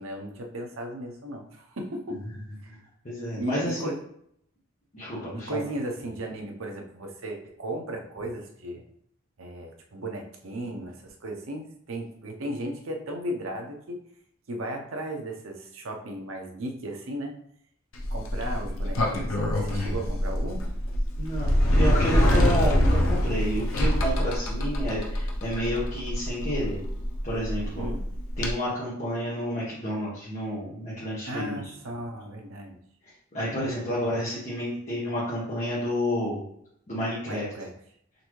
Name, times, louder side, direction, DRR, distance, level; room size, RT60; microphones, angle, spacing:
voice 1, 0.0-2.2 2.6-2.7 3.4-4.0 5.3-8.8 9.4-14.0 14.5-17.4 18.1-20.6 27.8-28.0 31.3-32.8 37.3-37.7, right 1 dB, 80° right, 2 dB, 0.7 m, -35 dB
voice 2, 3.0-3.9 4.9-5.6 21.2-21.5 21.7-26.8 27.2-27.9 28.4-31.6 33.3-36.4 36.9-37.4, equal, 35° left, -9 dB, 1.3 m, -30 dB
Sliding door, 17.9-28.5, equal, 80° left, 0.8 m, -25 dB
3.9 x 3.4 x 3.1 m, 0.69 s
head